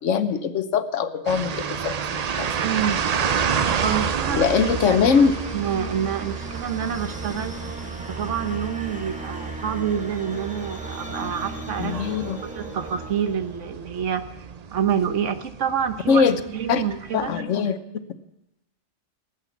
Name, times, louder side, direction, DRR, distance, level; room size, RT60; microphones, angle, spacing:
voice 1, 0.0-2.5 4.4-5.4 11.8-12.4 16.1-16.4 16.7-16.8 17.1-17.8, left 6 dB, 75° left, 11 dB, 1.2 m, -21 dB
sound 1, 1.3-17.4, right 7 dB, 50° right, 0.4 m, -30 dB
voice 2, 2.6-3.0 3.4-4.5 4.9-5.0 5.5-7.5 8.2-12.1 12.4-14.2 14.7-17.3, right 8 dB, 70° right, 9 dB, 1.3 m, -27 dB
sound 2, 4.6-14.1, right 2 dB, 5° right, 1.2 m, -36 dB
19.0 x 8.2 x 7.1 m, 0.89 s
omnidirectional pair, 1.3 m